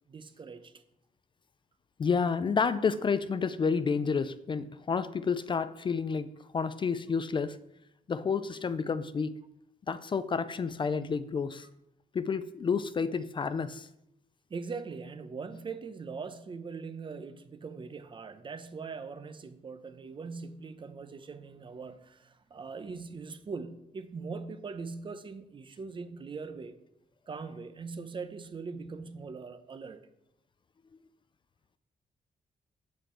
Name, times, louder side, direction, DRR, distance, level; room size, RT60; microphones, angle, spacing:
voice 1, 0.1-0.7 14.5-26.8 27.3-30.0, right 4 dB, 30° right, 0.7 m, -41 dB
voice 2, 2.0-7.6 8.1-9.4 9.9-11.7 12.1-13.9, left 5 dB, 30° left, 0.3 m, -30 dB
8.3 x 7.7 x 4.4 m
wide cardioid pair, 175°, 15 cm